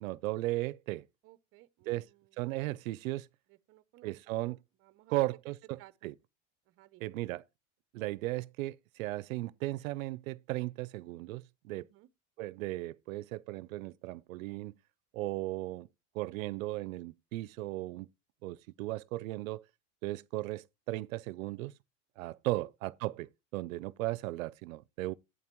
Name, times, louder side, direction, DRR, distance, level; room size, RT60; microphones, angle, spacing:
voice 1, 0.0-1.0 1.9-2.1 2.4-3.3 4.0-4.6 5.1-6.1 7.0-7.4 7.9-11.8 12.4-14.7 15.1-15.9 16.1-18.1 18.4-19.6 20.0-21.7 22.2-25.1, right 18 dB, 90° right, 0.6 m, -36 dB
voice 2, 1.2-2.6 3.5-4.4 4.8-6.1 6.7-7.2 11.7-12.1 22.5-22.7, right 17 dB, 35° right, 0.7 m, -59 dB
11.0 x 8.4 x 3.0 m
supercardioid pair, 140°, 39 cm